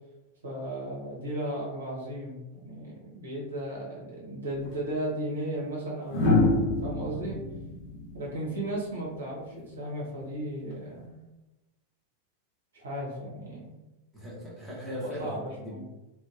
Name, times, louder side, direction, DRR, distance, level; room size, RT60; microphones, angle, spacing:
voice 1, 0.4-6.5 6.8-7.4 8.1-11.2 12.7-13.8 14.9-15.8, right 1 dB, 70° right, -5 dB, 1.0 m, -35 dB
sound 1, 4.5-4.7 6.1-9.1 10.7-11.0, left 2 dB, 40° left, 0.7 m, -27 dB
voice 2, 14.1-15.8, equal, ahead, -8 dB, 1.2 m, -38 dB
2.8 x 2.3 x 2.5 m, 1.0 s
figure-of-eight pair, 90°, 0 cm